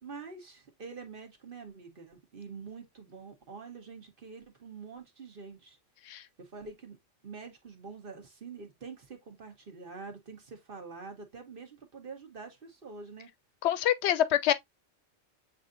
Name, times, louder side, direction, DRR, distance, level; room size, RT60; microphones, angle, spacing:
voice 1, 0.0-5.8 6.4-7.0 7.2-13.3, right 4 dB, 50° right, 1.2 m, -46 dB
voice 2, 13.6-14.5, left 11 dB, 65° left, 0.8 m, -26 dB
8.0 x 2.7 x 2.5 m
omnidirectional pair, 1.3 m